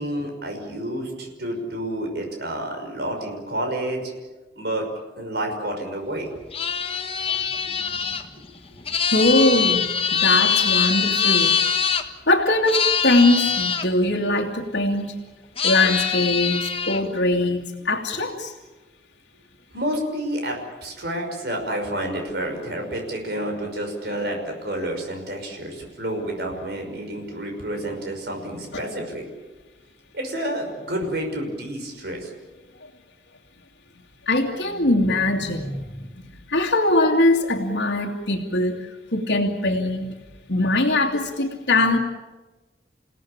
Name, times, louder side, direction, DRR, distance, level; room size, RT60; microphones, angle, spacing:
voice 1, 0.0-4.1 4.6-4.9 5.2-6.3 18.1-18.3 19.7-29.2 30.1-32.3, right 1 dB, 60° right, 3 dB, 5.8 m, -29 dB
sound 1, 6.5-12.0 12.7-13.9 15.6-17.0, left 7 dB, 35° left, 1.5 m, -23 dB
voice 2, 9.1-11.6 12.3-15.2 15.6-18.5 28.7-28.8 34.3-40.1 40.5-42.0, left 2 dB, 70° left, -4 dB, 2.4 m, -21 dB
29.0 x 17.5 x 8.8 m, 1.2 s
head